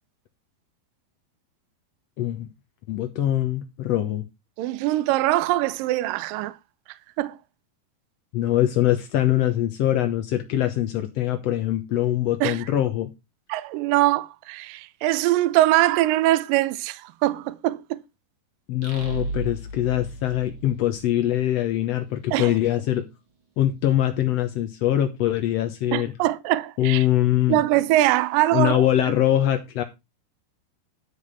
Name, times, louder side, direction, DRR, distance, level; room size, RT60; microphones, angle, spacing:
voice 1, 2.2-2.5 2.9-4.2 8.3-13.1 18.7-23.0 23.6-26.1 26.8-27.6 28.5-29.8, left 12 dB, 80° left, 1.4 m, -23 dB
voice 2, 4.6-6.6 7.2-7.4 12.4-12.7 13.5-18.0 22.3-22.5 25.9-27.1 27.5-28.9, right 16 dB, 75° right, 2.2 m, -22 dB
sound 1, 18.8-21.5, right 1 dB, 35° right, 2.7 m, -34 dB
11.5 x 5.1 x 5.6 m
omnidirectional pair, 4.4 m